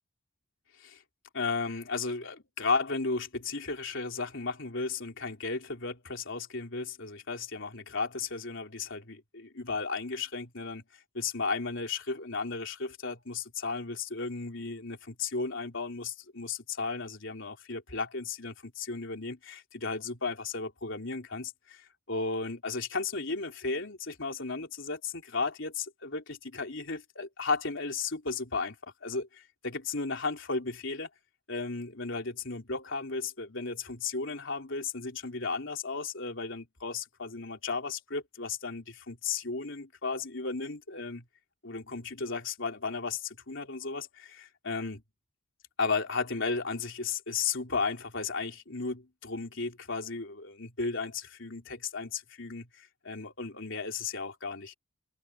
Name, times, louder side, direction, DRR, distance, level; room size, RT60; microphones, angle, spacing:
voice 1, 1.3-10.8 11.1-28.8 29.0-31.1 31.5-41.2 41.6-45.0 45.8-54.8, left 4 dB, 65° left, 3.9 m, -34 dB
head